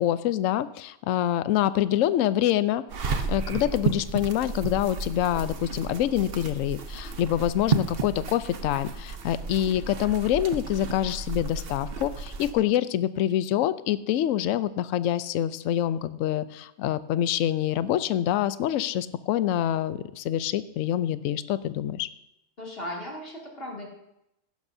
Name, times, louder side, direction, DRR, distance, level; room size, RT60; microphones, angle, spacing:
voice 1, 0.0-22.1, left 12 dB, 65° left, 14 dB, 0.9 m, -26 dB
sound 1, 2.9-12.5, right 5 dB, 50° right, 0.9 m, -32 dB
voice 2, 22.6-23.9, left 1 dB, 40° left, -3 dB, 2.8 m, -36 dB
15.5 x 11.5 x 2.7 m, 0.83 s
omnidirectional pair, 1.6 m